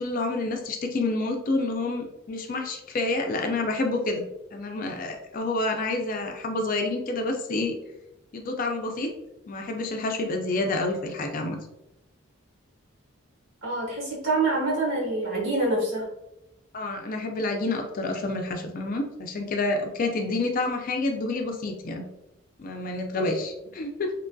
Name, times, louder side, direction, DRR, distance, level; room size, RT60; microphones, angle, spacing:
voice 1, 0.0-4.3 4.5-7.8 8.3-9.1 9.5-11.6 16.7-22.1 22.6-24.1, left 2 dB, 40° left, 4 dB, 0.3 m, -28 dB
voice 2, 13.6-16.1 23.2-23.3, right 2 dB, 70° right, -4 dB, 1.3 m, -26 dB
2.9 x 2.6 x 2.2 m, 0.89 s
head